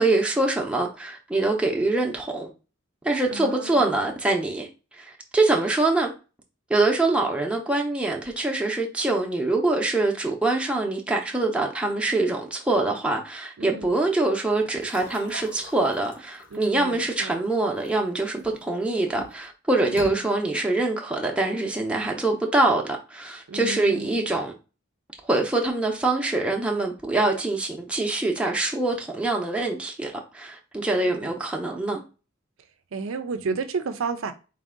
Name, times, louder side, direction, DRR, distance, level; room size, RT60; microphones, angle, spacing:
voice 1, 0.0-2.5 3.0-4.7 4.9-6.1 6.7-24.5 25.2-32.0, right 2 dB, 5° right, 0.6 m, -24 dB
voice 2, 3.3-3.9 13.6-13.8 16.5-17.3 19.8-20.1 23.5-24.2 30.9-31.3 32.9-34.3, right 4 dB, 80° right, 0.5 m, -32 dB
sound 1, 14.8-18.6 19.1-19.5 19.8-20.2, left 1 dB, 65° left, 1.4 m, -42 dB
4.1 x 2.6 x 3.7 m
head